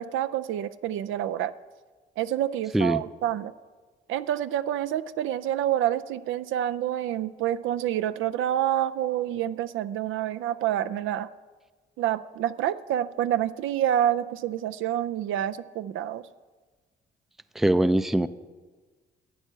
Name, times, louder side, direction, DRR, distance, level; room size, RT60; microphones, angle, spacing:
voice 1, 0.0-1.5 2.2-3.5 4.1-11.3 12.0-16.3, right 11 dB, 80° right, 13 dB, 0.5 m, -28 dB
voice 2, 17.6-18.3, right 1 dB, ahead, 14 dB, 0.4 m, -22 dB
11.0 x 8.3 x 6.8 m, 1.4 s
cardioid pair, 90°, 20 cm